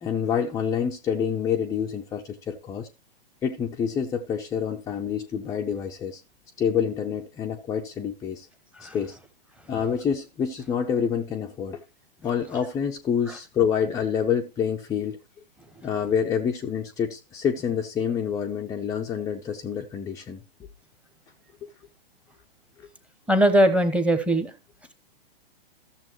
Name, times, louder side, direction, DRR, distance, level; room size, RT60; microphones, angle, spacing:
voice 1, 0.0-2.9 3.4-6.2 6.6-8.5 8.8-9.2 9.7-11.8 12.2-15.2 15.8-20.4, left 7 dB, 10° left, 0.5 m, -27 dB
voice 2, 23.3-24.5, right 1 dB, 5° right, 0.9 m, -20 dB
14.0 x 7.1 x 3.0 m
hypercardioid pair, 120°, 30 cm